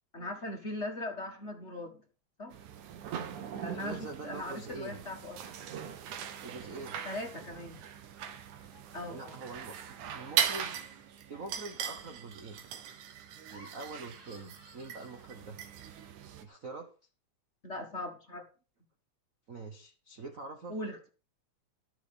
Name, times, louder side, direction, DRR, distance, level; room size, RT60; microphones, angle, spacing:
voice 1, 0.1-2.0 2.4-2.5 3.6-5.5 7.0-7.8 8.9-9.4 17.6-18.4 20.7-21.1, left 1 dB, 30° left, 2 dB, 1.4 m, -39 dB
Laughter, 2.5-3.0 3.2-3.9 4.3-5.1 6.4-7.9 8.6-15.5, equal, 45° right, 6.4 m, -61 dB
sound 1, 2.5-16.4, right 8 dB, 90° right, 2.7 m, -39 dB
voice 2, 3.7-5.0 6.4-7.0 9.1-10.8 11.3-12.6 13.5-15.6 16.4-16.9 19.5-20.8, right 3 dB, 65° right, 6 dB, 0.8 m, -44 dB
13.5 x 6.1 x 7.0 m, 0.37 s
omnidirectional pair, 3.4 m